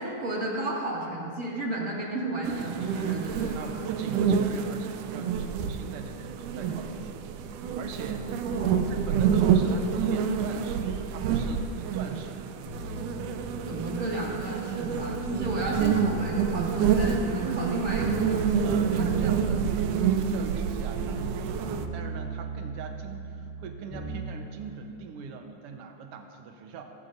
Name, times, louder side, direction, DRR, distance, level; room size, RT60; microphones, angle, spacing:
voice 1, 0.0-3.7 8.2-8.9 13.7-19.1, right 1 dB, 25° right, -4 dB, 2.2 m, -33 dB
sound 1, 2.4-21.9, right 7 dB, 80° right, 2.2 m, -28 dB
voice 2, 3.5-8.4 8.9-12.5 13.9-14.1 14.7-14.9 15.5-16.0 18.6-26.8, right 6 dB, 60° right, 4 dB, 1.6 m, -42 dB
sound 2, 12.7-15.3 15.6-17.7 18.0-21.4 21.6-24.3 24.6-24.7, right 2 dB, 35° left, 4.2 m, -39 dB
21.5 x 13.5 x 2.7 m, 2.5 s
omnidirectional pair, 3.6 m